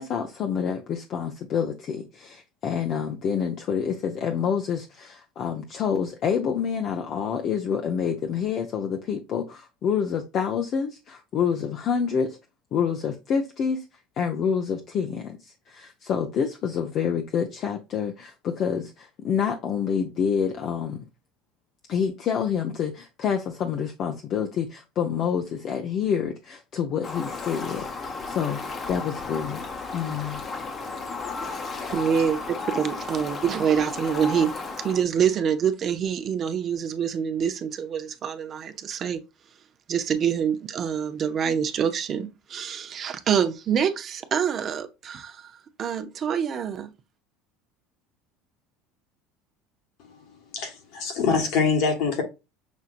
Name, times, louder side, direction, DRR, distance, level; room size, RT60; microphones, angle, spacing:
voice 1, 0.0-12.4 12.7-13.8 14.2-21.0 21.9-28.6 28.9-29.6 29.9-30.4, left 7 dB, 50° left, 0.6 m, -27 dB
Fowl, 27.0-35.0, left 4 dB, 30° left, 0.9 m, -34 dB
voice 2, 31.9-39.2 39.9-46.9, right 7 dB, 40° right, 0.6 m, -26 dB
voice 3, 50.5-52.2, left 5 dB, 65° left, 1.6 m, -24 dB
6.1 x 2.7 x 2.5 m
supercardioid pair, 110°, 0 cm